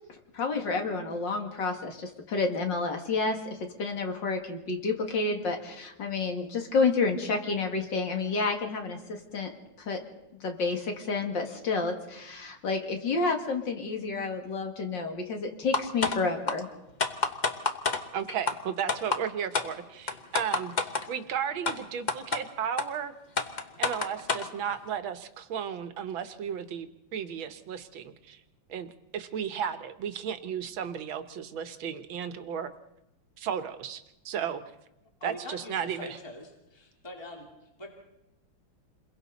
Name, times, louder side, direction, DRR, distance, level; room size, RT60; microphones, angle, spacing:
voice 1, 0.3-9.5 9.8-10.0 10.4-16.7, left 4 dB, 65° left, 3 dB, 2.8 m, -30 dB
sound 1, 15.7-16.2 16.5-16.6 17.0-18.0 18.5-18.6 18.9-19.2 19.5-19.7 20.1-21.0 21.7-21.8 22.1-22.4 22.8-22.9 23.4-24.5, left 4 dB, 30° left, 0.9 m, -27 dB
voice 2, 18.1-23.1 23.8-28.4 28.7-32.7 33.4-34.6 35.2-36.2, right 8 dB, 80° right, 10 dB, 1.8 m, -34 dB
voice 3, 35.2-37.9, left 1 dB, 15° left, 0 dB, 2.4 m, -43 dB
29.0 x 22.0 x 4.1 m, 0.92 s
omnidirectional pair, 2.2 m